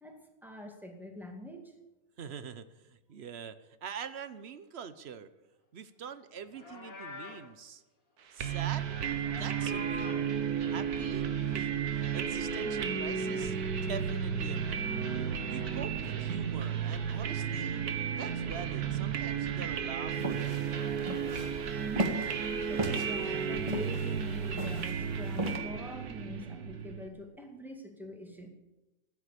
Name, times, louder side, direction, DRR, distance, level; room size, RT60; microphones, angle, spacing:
voice 1, 0.0-1.7 22.7-28.5, left 1 dB, ahead, 2 dB, 2.2 m, -44 dB
voice 2, 2.2-5.3 5.7-7.8 8.3-10.2 10.7-11.8 12.1-14.9 15.5-17.8 18.2-21.1, right 7 dB, 50° right, 13 dB, 1.0 m, -44 dB
Livestock farm animals working animals, 6.4-7.5 8.8-10.3, left 3 dB, 70° left, 3.5 m, -46 dB
sound 1, 8.4-27.1, right 7 dB, 90° right, 1.7 m, -33 dB
sound 2, 20.2-25.6, right 1 dB, 20° right, 1.9 m, -35 dB
13.5 x 9.7 x 8.4 m, 1.0 s
omnidirectional pair, 1.6 m